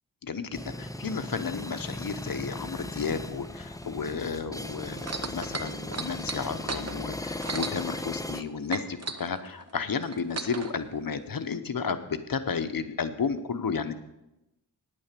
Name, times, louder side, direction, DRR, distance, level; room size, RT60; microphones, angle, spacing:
voice 1, 0.2-14.0, left 5 dB, 60° left, 9 dB, 0.9 m, -32 dB
sound 1, 0.5-8.4, left 1 dB, 10° left, 0.5 m, -37 dB
sound 2, 5.0-8.4 8.7-10.7 11.5-11.6, right 4 dB, 40° right, 0.8 m, -35 dB
9.8 x 8.8 x 6.8 m, 0.92 s
wide cardioid pair, 90°, 39 cm